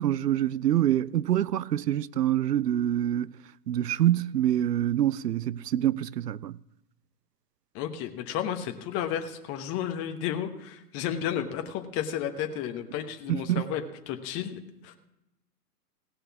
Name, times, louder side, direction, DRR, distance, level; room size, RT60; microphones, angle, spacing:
voice 1, 0.0-3.4 3.7-6.6 13.3-13.6, right 12 dB, 90° right, 0.5 m, -26 dB
voice 2, 7.7-15.0, left 9 dB, 30° left, 1.1 m, -32 dB
17.5 x 6.7 x 6.0 m
hypercardioid pair, 120°, 47 cm